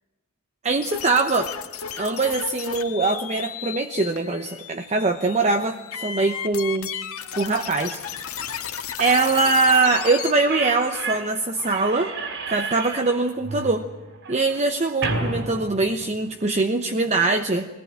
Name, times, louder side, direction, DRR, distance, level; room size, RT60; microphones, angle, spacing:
voice 1, 0.6-1.5 2.0-6.9 7.3-8.0 9.0-12.1 12.5-13.9 14.3-17.7, right 3 dB, 30° right, 6 dB, 0.9 m, -22 dB
sound 1, 0.8-10.3, left 8 dB, 75° left, 2.1 m, -34 dB
Slam / Squeak, 8.7-8.8 9.0-16.5, right 3 dB, 60° right, 4.0 m, -32 dB
22.0 x 17.5 x 9.0 m, 1.2 s
head